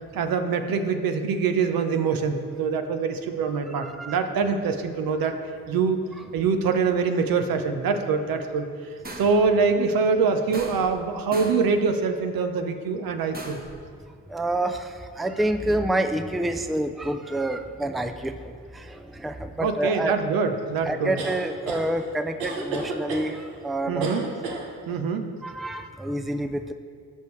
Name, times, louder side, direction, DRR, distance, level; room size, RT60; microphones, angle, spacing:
voice 1, 0.1-5.4 5.7-6.0 6.3-8.7 9.2-13.6 19.6-21.1 23.9-24.2 24.9-25.3, right 5 dB, 65° right, 7 dB, 0.9 m, -24 dB
voice 2, 3.7-4.2 14.3-20.2 20.8-24.1 25.4-26.7, right 1 dB, ahead, 8 dB, 0.5 m, -28 dB
sound 1, 9.0-9.5 10.5-11.0 11.3-11.7 13.3-13.8, right 2 dB, 25° right, 1.2 m, -38 dB
sound 2, 21.2-21.8 22.4-23.3 24.0-24.6, right 3 dB, 85° right, 1.1 m, -31 dB
14.0 x 5.4 x 3.2 m, 2.1 s
supercardioid pair, 55°, 37 cm